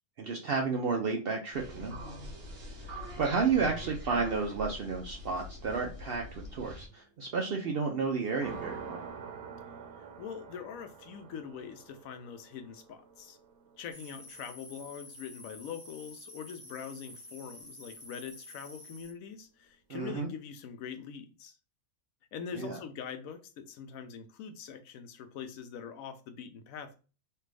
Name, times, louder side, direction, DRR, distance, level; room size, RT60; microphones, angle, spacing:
voice 1, 0.2-2.0 2.8-9.0 19.9-20.3 22.5-22.8, right 5 dB, 65° right, 1 dB, 0.6 m, -32 dB
sound 1, 1.5-6.9, equal, 50° right, 1.1 m, -44 dB
sound 2, 1.6-8.0 8.4-16.1, right 6 dB, 90° right, 1.1 m, -50 dB
voice 2, 10.0-13.4 13.8-21.6 22.3-27.0, left 7 dB, 75° left, 8 dB, 1.0 m, -43 dB
sound 3, 13.9-19.1, left 1 dB, 25° left, 0.3 m, -50 dB
3.3 x 2.4 x 3.2 m, 0.35 s
omnidirectional pair, 1.5 m